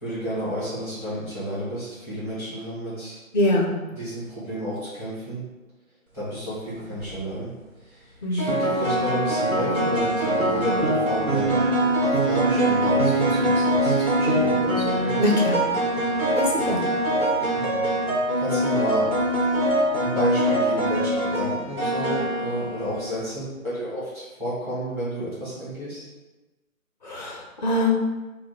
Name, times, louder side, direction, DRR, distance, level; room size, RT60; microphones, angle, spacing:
voice 1, 0.0-3.1 4.0-5.4 6.1-7.5 8.3-11.6 12.0-15.3 17.5-17.9 18.4-19.1 20.0-26.0, equal, 5° right, -13 dB, 0.9 m, -31 dB
voice 2, 3.3-3.8 8.2-8.5 15.2-15.6 16.3-16.8 27.0-27.9, left 1 dB, 35° left, -1 dB, 0.5 m, -23 dB
sound 1, 6.8-7.1 8.4-23.2, right 1 dB, 85° right, 1.1 m, -23 dB
3.5 x 2.1 x 4.2 m, 1.1 s
figure-of-eight pair, 140°, 42 cm